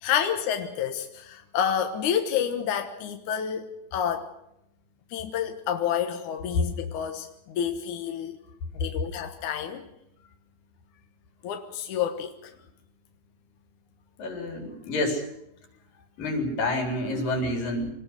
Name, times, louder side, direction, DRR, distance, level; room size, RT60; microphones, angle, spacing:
voice 1, 0.0-4.3 5.1-8.4 8.7-9.9 11.4-12.5, left 8 dB, 70° left, 5 dB, 2.7 m, -29 dB
voice 2, 14.2-15.2 16.2-17.9, left 1 dB, 85° left, 3 dB, 5.8 m, -28 dB
24.5 x 19.5 x 6.5 m, 0.81 s
omnidirectional pair, 3.8 m